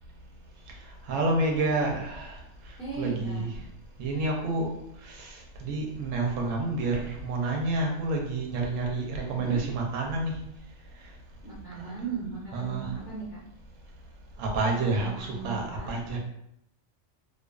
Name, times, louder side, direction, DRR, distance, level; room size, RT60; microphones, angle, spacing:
voice 1, 1.1-2.4 3.0-3.5 4.0-4.7 5.0-10.3 11.8-11.9 12.5-12.9 14.4-16.2, right 2 dB, 85° right, 1 dB, 1.0 m, -29 dB
voice 2, 2.8-3.4 9.3-9.6 11.4-13.4 14.8-15.9, right 5 dB, 20° left, -10 dB, 1.0 m, -37 dB
2.4 x 2.3 x 2.3 m, 0.77 s
omnidirectional pair, 1.3 m